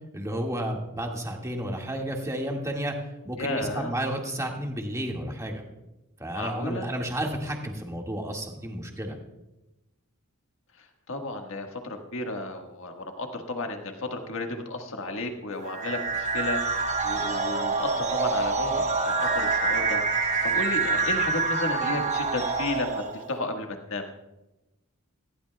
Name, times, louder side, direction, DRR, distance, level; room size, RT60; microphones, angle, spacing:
voice 1, 0.1-2.9 3.2-5.6 6.2-9.2, right 1 dB, 15° right, 0 dB, 1.9 m, -31 dB
voice 2, 3.4-3.9 6.3-6.9 10.8-24.1, left 2 dB, 65° left, 3 dB, 1.6 m, -33 dB
sound 1, 15.7-23.3, right 3 dB, 35° right, 1.1 m, -26 dB
19.0 x 15.5 x 2.3 m, 0.98 s
head